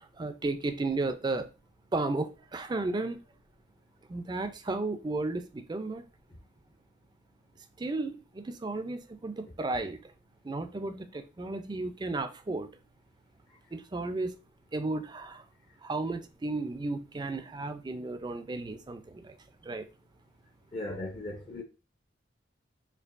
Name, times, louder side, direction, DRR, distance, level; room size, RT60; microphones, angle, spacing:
voice 1, 0.2-1.5 1.9-3.2 4.1-6.0 7.8-10.0 10.5-12.7 13.7-14.3 14.7-15.4 15.8-19.3 19.7-19.8, right 2 dB, 25° right, 0.4 m, -33 dB
voice 2, 20.7-21.6, left 2 dB, 30° left, 0.5 m, -37 dB
4.4 x 2.8 x 2.4 m
head